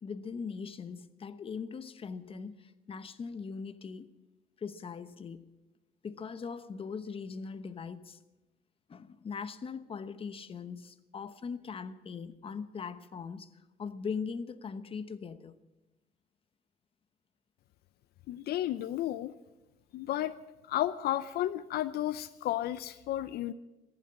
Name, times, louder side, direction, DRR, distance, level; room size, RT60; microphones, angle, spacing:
voice 1, 0.0-4.1 4.6-5.6 6.0-8.2 8.9-13.5 13.8-15.6, left 5 dB, 35° left, 0.9 m, -40 dB
voice 2, 18.3-19.3 19.9-20.3 20.6-23.5, left 13 dB, 70° left, 0.6 m, -32 dB
14.5 x 11.0 x 8.6 m
cardioid pair, 110°, 17 cm